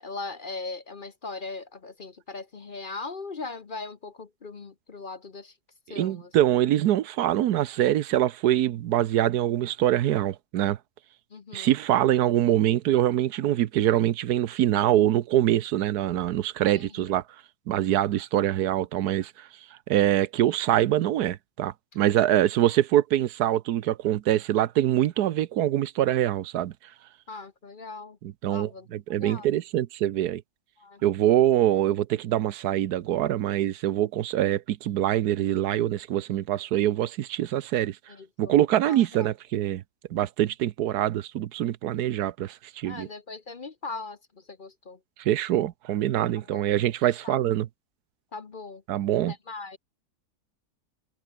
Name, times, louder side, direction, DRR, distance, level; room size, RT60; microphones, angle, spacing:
voice 1, 0.0-5.5 5.9-6.3 11.3-11.7 16.7-17.0 27.3-28.2 28.5-28.9 29.2-29.5 30.8-31.0 38.1-38.5 38.9-39.3 42.8-45.0 46.5-46.7 47.2-47.4 48.3-48.8 49.3-49.8, left 3 dB, 40° left, 1.0 m, -39 dB
voice 2, 6.0-10.8 11.5-17.2 17.7-19.5 19.9-26.7 28.2-30.4 31.0-38.0 38.4-39.8 40.1-43.1 45.2-47.7 48.9-49.3, right 12 dB, 85° right, 1.3 m, -24 dB
omnidirectional pair, 1.7 m